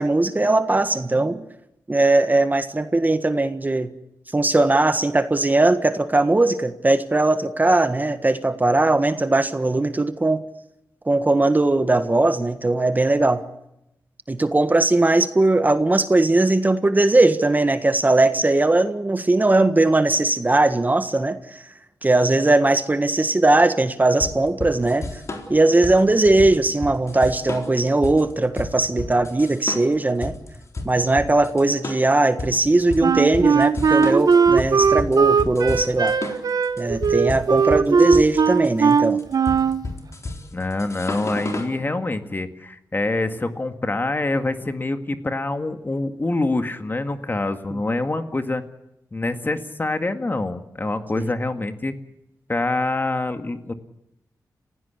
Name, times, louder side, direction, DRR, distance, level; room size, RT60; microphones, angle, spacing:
voice 1, 0.0-1.4 1.9-3.9 4.3-10.4 11.1-13.4 14.3-21.4 22.0-25.1 25.5-30.3 30.8-36.2 36.8-39.2 47.7-47.8 51.2-51.3, right 2 dB, 25° right, 10 dB, 1.5 m, -19 dB
sound 1, 24.2-41.8, left 2 dB, 45° left, 3.9 m, -32 dB
Wind instrument woodwind instrument, 33.0-39.8, right 5 dB, 65° right, 1.1 m, -18 dB
voice 2, 40.5-48.6 49.1-51.9 52.5-53.7, left 2 dB, 30° left, 8 dB, 2.0 m, -25 dB
30.0 x 16.0 x 8.3 m, 0.86 s
wide cardioid pair, 80°, 7 cm